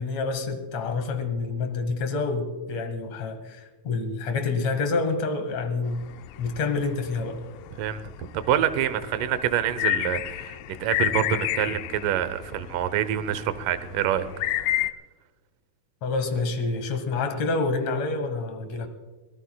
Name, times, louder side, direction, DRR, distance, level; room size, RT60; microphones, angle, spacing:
voice 1, 0.0-6.0 6.4-7.4 16.0-18.9, left 3 dB, 60° left, 8 dB, 2.3 m, -28 dB
sound 1, 5.9-14.9, left 14 dB, 80° left, 2.2 m, -31 dB
voice 2, 7.8-14.3, right 10 dB, 75° right, 13 dB, 2.3 m, -26 dB
24.5 x 18.0 x 2.3 m, 1.3 s
omnidirectional pair, 3.9 m